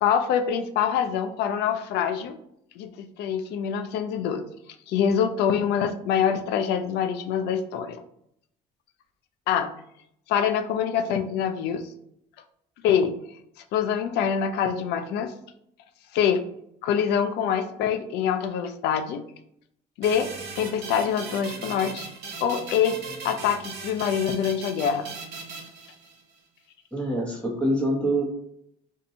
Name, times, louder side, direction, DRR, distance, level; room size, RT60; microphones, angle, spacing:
voice 1, 0.0-2.4 2.8-4.4 4.9-8.0 9.5-9.7 10.3-11.9 12.8-13.2 13.7-15.3 16.1-16.5 16.8-19.2 20.0-22.1 22.4-23.0 23.2-25.1, left 8 dB, 80° left, 8 dB, 0.5 m, -25 dB
sound 1, 20.0-26.4, right 4 dB, 75° right, 0.9 m, -38 dB
voice 2, 26.9-28.2, right 1 dB, 5° left, -2 dB, 1.2 m, -25 dB
2.7 x 2.6 x 4.2 m, 0.74 s
cardioid pair, 110°, 17 cm